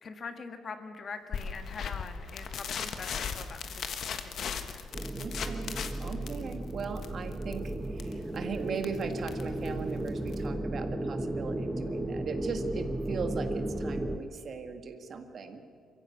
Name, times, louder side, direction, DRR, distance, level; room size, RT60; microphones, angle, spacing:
voice 1, 0.0-4.9, left 4 dB, 45° left, 7 dB, 1.6 m, -44 dB
sound 1, 1.3-10.5, left 6 dB, 65° left, 1.4 m, -38 dB
sound 2, 4.9-14.2, right 1 dB, 10° right, 1.2 m, -34 dB
voice 2, 5.2-15.6, right 5 dB, 55° right, 6 dB, 1.8 m, -38 dB
22.5 x 15.0 x 8.4 m, 2.3 s
cardioid pair, 90°, 0 cm